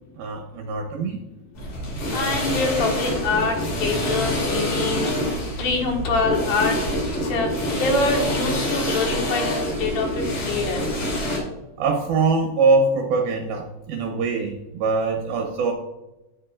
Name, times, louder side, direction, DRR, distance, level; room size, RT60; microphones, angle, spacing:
voice 1, 0.2-1.2 11.8-15.7, right 3 dB, 75° right, 3 dB, 2.3 m, -23 dB
sound 1, 1.6-11.4, left 1 dB, 45° left, 3.9 m, -26 dB
voice 2, 2.1-5.1 5.6-6.8 7.2-7.5 7.8-10.8, left 3 dB, 70° left, 1 dB, 3.5 m, -25 dB
18.0 x 6.4 x 2.4 m, 1.0 s
omnidirectional pair, 5.1 m